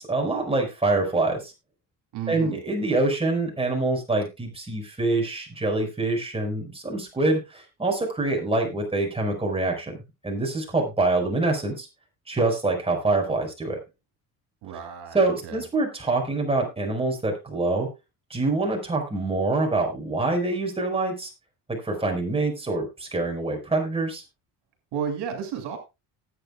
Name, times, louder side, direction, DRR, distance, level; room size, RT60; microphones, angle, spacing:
voice 1, 0.0-1.5 2.3-10.0 10.2-11.9 12.3-13.8 15.1-17.9 18.3-21.3 21.7-24.2, right 2 dB, 15° right, 2 dB, 5.1 m, -25 dB
voice 2, 2.1-2.6 14.6-15.6 24.9-25.8, right 8 dB, 75° right, 4 dB, 2.9 m, -32 dB
18.5 x 8.6 x 2.4 m, 0.25 s
cardioid pair, 115°, 41 cm